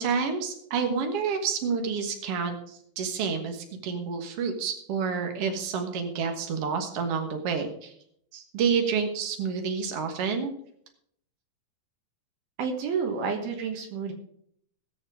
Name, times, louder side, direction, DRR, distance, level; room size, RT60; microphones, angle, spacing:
voice 1, 0.0-7.9 8.3-10.5, right 6 dB, 90° right, 5 dB, 1.3 m, -29 dB
voice 2, 12.6-14.1, right 5 dB, 70° right, 3 dB, 3.0 m, -30 dB
18.5 x 7.0 x 5.0 m, 0.69 s
omnidirectional pair, 4.9 m